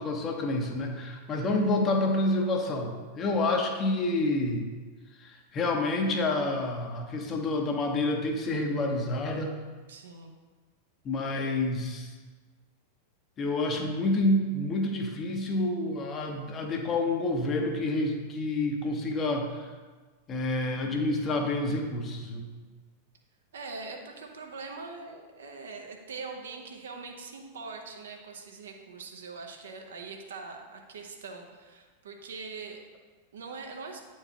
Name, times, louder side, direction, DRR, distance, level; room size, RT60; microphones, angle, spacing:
voice 1, 0.0-4.7 5.2-9.5 11.0-12.1 13.4-19.7 20.3-22.5, left 2 dB, 25° left, 3 dB, 0.8 m, -28 dB
voice 2, 9.9-10.3 23.5-32.8 33.3-34.0, right 4 dB, 65° right, 2 dB, 0.8 m, -42 dB
8.7 x 4.6 x 2.9 m, 1.4 s
figure-of-eight pair, 90°, 0 cm